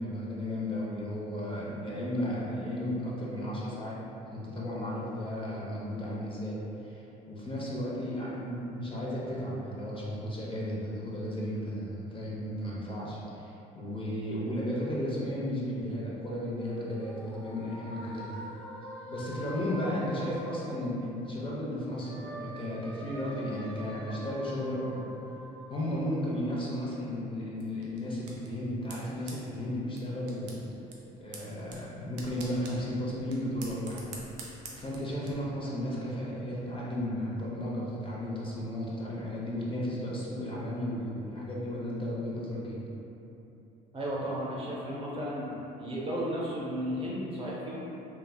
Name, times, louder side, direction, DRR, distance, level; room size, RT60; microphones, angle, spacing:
voice 1, 0.0-4.0 4.3-18.4 19.1-25.1 25.7-30.6 31.2-34.1 34.7-42.8, equal, 25° left, -6 dB, 0.8 m, -34 dB
sound 1, 16.4-21.4 21.7-26.5, equal, 5° left, 0.3 m, -45 dB
sound 2, 27.6-35.3, right 3 dB, 90° right, 0.4 m, -49 dB
voice 2, 43.9-45.5 45.8-47.8, equal, 25° right, -5 dB, 0.8 m, -34 dB
3.2 x 2.3 x 2.3 m, 3.0 s
hypercardioid pair, 65°, 21 cm